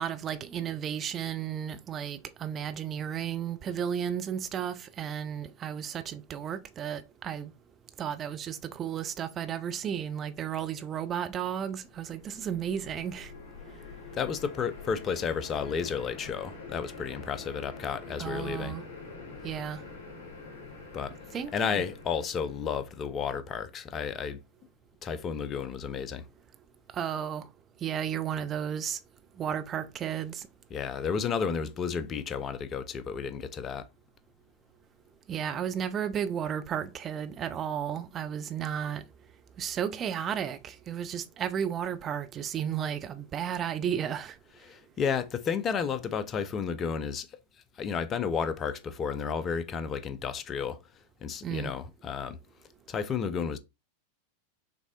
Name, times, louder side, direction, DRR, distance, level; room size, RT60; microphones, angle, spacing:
voice 1, 0.0-7.5 8.0-13.3 18.2-18.8 19.4-19.8 21.3-21.8 26.9-27.5 27.8-29.0 29.4-30.5 35.3-39.0 39.6-44.4 51.4-51.7, right 9 dB, 25° right, 0.5 m, -33 dB
sound 1, 11.8-23.2, left 4 dB, 50° left, 1.8 m, -46 dB
voice 2, 14.1-18.8 20.9-21.1 21.5-24.4 25.0-26.2 30.7-33.9 44.6-47.3 47.8-50.8 51.2-52.4 52.9-53.6, left 6 dB, 25° left, 0.5 m, -32 dB
6.0 x 3.2 x 2.3 m
figure-of-eight pair, 90°, 0 cm